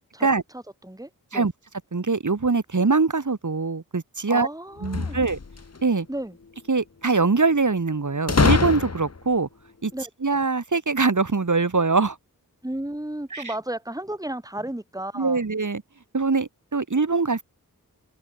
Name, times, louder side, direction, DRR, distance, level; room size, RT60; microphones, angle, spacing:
voice 1, 0.5-1.5 4.3-5.3 6.1-6.4 9.9-10.1 12.6-15.4, right 1 dB, 10° right, 3.3 m, -33 dB
voice 2, 1.9-4.5 4.8-5.4 5.8-6.1 6.7-9.5 9.8-9.9 10.2-12.2 13.3-13.5 15.1-15.8 16.1-17.4, right 4 dB, 55° right, 3.3 m, -23 dB
sound 1, 4.8-5.8 8.3-9.3, left 4 dB, 45° left, 1.6 m, -23 dB
wide cardioid pair, 80°, 35 cm